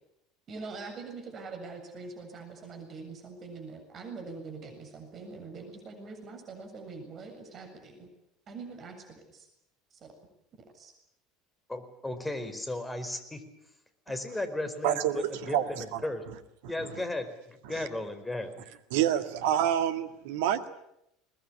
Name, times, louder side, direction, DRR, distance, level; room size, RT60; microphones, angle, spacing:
voice 1, 0.5-8.1 8.5-9.5 10.0-10.1 10.7-10.9, right 4 dB, 40° right, 5 dB, 7.5 m, -43 dB
voice 2, 11.7-13.4 14.1-16.2 16.6-18.7, left 2 dB, 10° left, 9 dB, 4.7 m, -35 dB
voice 3, 14.8-16.0 17.8-17.9 18.9-20.7, right 10 dB, 65° right, 9 dB, 1.9 m, -28 dB
22.0 x 20.5 x 10.0 m, 0.80 s
figure-of-eight pair, 70°, 0 cm